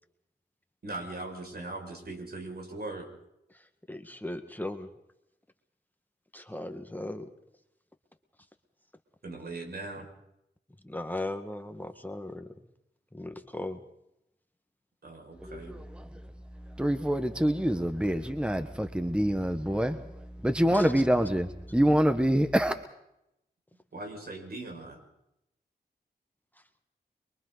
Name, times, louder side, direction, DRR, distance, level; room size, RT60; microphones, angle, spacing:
voice 1, 0.8-3.1 9.2-10.1 15.0-15.8 23.9-25.0, right 2 dB, 65° right, 2 dB, 6.5 m, -39 dB
voice 2, 3.5-4.9 6.3-7.3 10.8-12.5 13.1-13.8 20.7-20.9, left 1 dB, 10° left, 6 dB, 1.9 m, -37 dB
voice 3, 15.4-16.2 16.8-22.7, equal, 5° right, 8 dB, 1.4 m, -26 dB
28.0 x 23.5 x 4.1 m, 0.82 s
cardioid pair, 60°, 18 cm